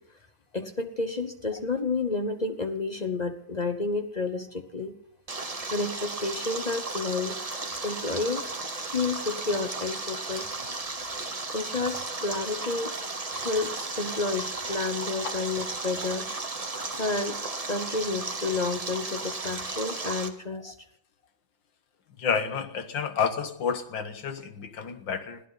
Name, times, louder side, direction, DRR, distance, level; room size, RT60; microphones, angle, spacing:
voice 1, 0.5-4.9 5.7-7.3 7.8-8.6 8.9-10.5 11.5-12.9 13.3-16.3 17.0-17.4 17.7-20.7, left 3 dB, 35° left, 7 dB, 0.8 m, -30 dB
Stream, 5.3-20.3, right 3 dB, 25° right, 1.2 m, -34 dB
voice 2, 22.2-25.4, left 6 dB, 85° left, 9 dB, 2.1 m, -30 dB
21.0 x 16.0 x 4.1 m, 0.68 s
omnidirectional pair, 2.0 m